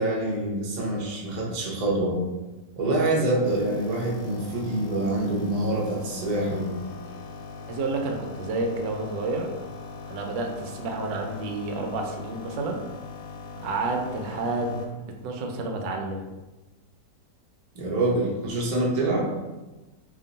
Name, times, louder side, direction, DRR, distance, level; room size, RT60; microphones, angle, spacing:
voice 1, 0.0-2.2 2.8-6.7 17.7-19.3, right 2 dB, 50° right, -4 dB, 0.5 m, -26 dB
sound 1, 3.4-14.9, left 4 dB, 75° left, 1.1 m, -41 dB
voice 2, 7.7-9.5 10.1-12.8 13.6-14.8 15.2-16.2, right 3 dB, 90° right, 2 dB, 1.3 m, -30 dB
2.9 x 2.5 x 3.9 m, 1.1 s
omnidirectional pair, 1.9 m